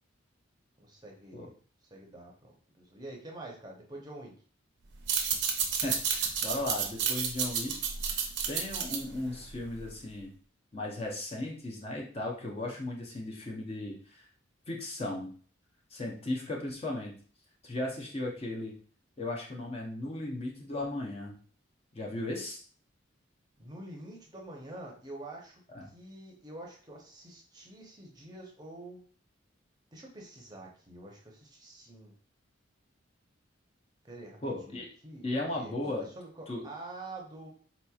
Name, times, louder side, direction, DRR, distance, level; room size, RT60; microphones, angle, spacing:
voice 1, 0.8-1.5 1.9-4.3 23.6-25.6 25.9-29.0 29.9-32.1 34.0-37.5, right 2 dB, 20° right, -1 dB, 0.7 m, -47 dB
sound 1, 4.9-10.1, right 7 dB, 60° right, 0.5 m, -31 dB
voice 2, 5.8-7.8 8.0-8.2 8.5-10.3 10.7-14.3 14.7-15.3 15.9-17.1 17.6-18.7 19.2-21.3 21.9-22.6 25.7-25.9 34.4-34.9 35.2-36.1 36.5-36.7, left 2 dB, 30° left, -1 dB, 0.6 m, -36 dB
4.1 x 2.9 x 2.3 m, 0.43 s
head